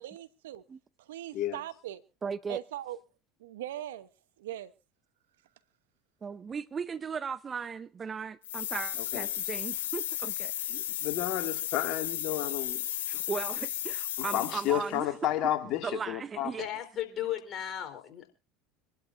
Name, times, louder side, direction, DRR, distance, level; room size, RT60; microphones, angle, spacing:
voice 1, 0.0-0.6 1.0-2.0 2.5-3.0 3.4-4.1 4.4-4.7, right 13 dB, 80° right, 1.0 m, -40 dB
voice 2, 2.2-2.6 6.2-10.5 13.1-15.1 15.8-16.6, right 6 dB, 30° right, 0.6 m, -37 dB
sound 1, 8.4-14.9, left 12 dB, 80° left, 0.9 m, -34 dB
voice 3, 10.7-12.8 14.3-16.5, left 13 dB, 60° left, 2.3 m, -31 dB
voice 4, 16.6-18.3, left 11 dB, 45° left, 4.3 m, -35 dB
26.5 x 12.0 x 2.7 m
hypercardioid pair, 75°, 0 cm